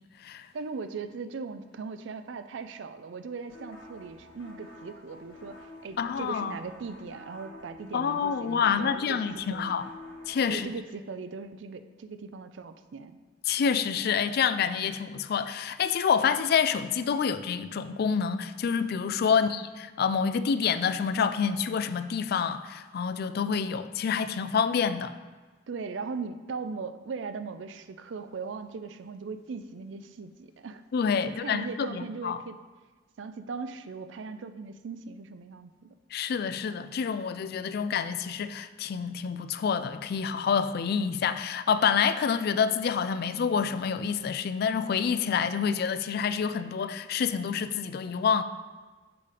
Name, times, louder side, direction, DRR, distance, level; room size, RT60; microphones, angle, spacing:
voice 1, 0.5-9.2 9.5-9.7 10.5-13.2 19.3-19.5 25.7-30.8 31.2-32.6 33.2-35.9, right 4 dB, 80° right, 10 dB, 0.4 m, -39 dB
sound 1, 3.5-10.7, left 1 dB, 85° left, 1.8 m, -49 dB
voice 2, 6.0-6.5 7.9-9.9 10.3-10.7 13.5-25.1 30.9-32.4 36.1-48.4, left 6 dB, 55° left, 12 dB, 0.3 m, -27 dB
7.0 x 5.0 x 4.8 m, 1.3 s
head